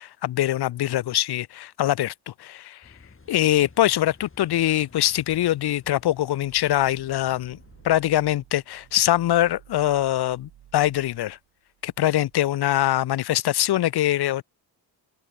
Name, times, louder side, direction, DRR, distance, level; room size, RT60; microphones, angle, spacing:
voice 1, 0.0-2.8 3.3-7.6 7.8-11.4 11.8-14.4, left 13 dB, 55° left, 0.6 m, -23 dB
Car passing by / Idling / Accelerating revving vroom, 2.8-7.9, left 3 dB, 25° left, 5.6 m, -52 dB
sound 1, 6.4-12.4, right 12 dB, 80° right, 3.1 m, -54 dB
open air
cardioid pair, 85°, 47 cm